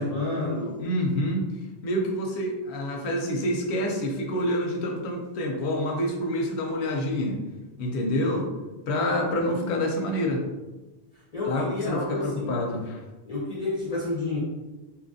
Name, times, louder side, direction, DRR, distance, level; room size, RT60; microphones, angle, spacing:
voice 1, 0.0-0.9 9.5-9.6 11.1-12.6 13.3-14.4, left 2 dB, 50° left, -5 dB, 0.5 m, -30 dB
voice 2, 0.8-1.5 1.8-7.4 7.8-8.5 8.9-10.4 11.5-13.0, left 1 dB, 85° left, 2 dB, 0.9 m, -27 dB
2.8 x 2.3 x 2.6 m, 1.1 s
omnidirectional pair, 1.1 m